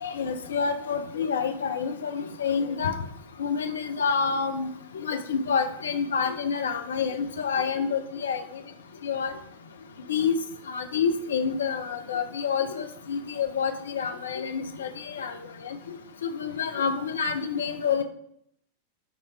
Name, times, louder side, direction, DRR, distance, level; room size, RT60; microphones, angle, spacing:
voice 1, 0.0-2.9 3.4-4.7 4.9-8.4 9.0-9.3 10.1-10.4 10.7-15.4 15.6-18.0, left 6 dB, 65° left, 7 dB, 0.7 m, -28 dB
6.0 x 4.2 x 4.7 m, 0.72 s
figure-of-eight pair, 90°, 0 cm